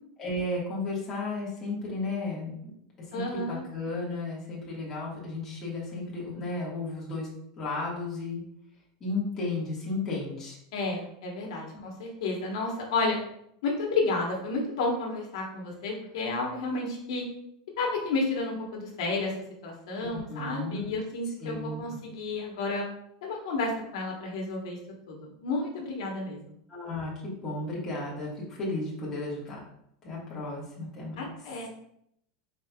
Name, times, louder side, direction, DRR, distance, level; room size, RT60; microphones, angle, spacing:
voice 1, 0.2-2.5 3.1-7.3 7.6-8.4 9.0-10.6 20.0-21.0 21.4-21.8 26.7-29.6 30.0-31.3, left 2 dB, 15° left, -6 dB, 1.4 m, -34 dB
voice 2, 3.1-3.6 10.7-13.2 13.6-17.2 17.8-19.3 19.6-22.8 23.2-24.8 25.1-26.5 31.2-31.7, left 3 dB, 75° left, -1 dB, 1.1 m, -31 dB
5.3 x 4.0 x 2.3 m, 0.74 s
supercardioid pair, 170°, 3 cm